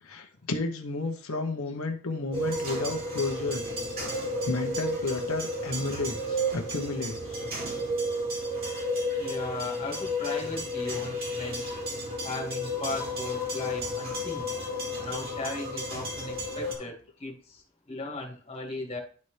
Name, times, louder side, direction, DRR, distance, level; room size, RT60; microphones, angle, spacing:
voice 1, 0.0-3.6 4.1-7.5 16.6-16.7, left 3 dB, 90° left, 4 dB, 1.0 m, -32 dB
sound 1, 2.3-16.7, left 1 dB, 45° right, 2.4 m, -32 dB
voice 2, 9.2-11.6 12.2-14.5 15.0-16.9 17.2-17.6 17.9-19.0, left 2 dB, 30° left, -1 dB, 1.9 m, -37 dB
10.5 x 4.2 x 3.3 m, 0.42 s
head